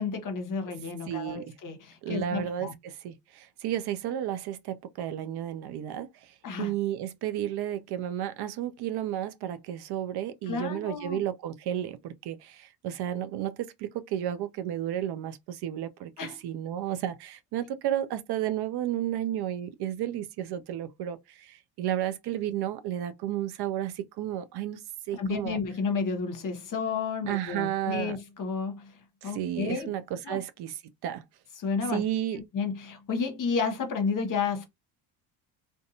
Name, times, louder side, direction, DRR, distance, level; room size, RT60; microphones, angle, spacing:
voice 1, 0.0-2.7 6.4-6.7 10.5-11.2 16.2-16.4 25.2-29.9 30.2-30.4 31.6-32.0 32.3-34.7, left 5 dB, 40° left, 1.0 m, -31 dB
voice 2, 1.1-1.5 2.0-24.8 25.1-25.6 27.3-28.2 29.2-31.2 31.9-32.4, right 11 dB, 55° right, 0.5 m, -32 dB
2.6 x 2.3 x 2.7 m
supercardioid pair, 75°, 48 cm